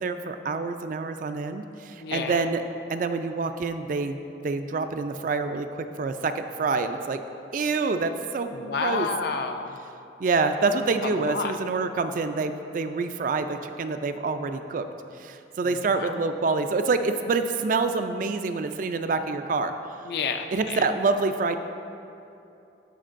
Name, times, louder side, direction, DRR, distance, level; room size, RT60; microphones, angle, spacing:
voice 1, 0.0-2.6 2.9-4.2 4.4-7.2 7.5-9.1 10.2-14.9 15.2-19.7 20.5-21.6, right 4 dB, 45° right, 8 dB, 0.3 m, -27 dB
voice 2, 2.0-2.4 8.5-9.8 11.0-11.6 15.6-16.1 20.0-20.9, left 5 dB, 55° left, 6 dB, 0.4 m, -30 dB
13.5 x 5.2 x 2.5 m, 2.8 s
head